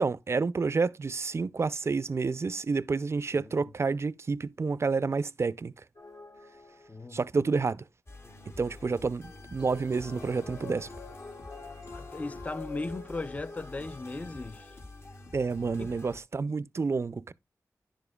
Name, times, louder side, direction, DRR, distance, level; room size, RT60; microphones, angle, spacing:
voice 1, 0.0-5.7 7.1-7.8 8.6-10.9 15.3-17.3, right 4 dB, 45° right, 0.4 m, -29 dB
sound 1, 6.0-7.3 9.6-14.8, left 4 dB, 65° left, 1.8 m, -47 dB
voice 2, 6.9-7.2 11.9-14.8 15.8-15.9, left 2 dB, 25° left, 0.4 m, -37 dB
sound 2, 8.1-16.2, left 2 dB, 45° left, 0.9 m, -48 dB
10.5 x 7.0 x 2.2 m
wide cardioid pair, 70°, 6 cm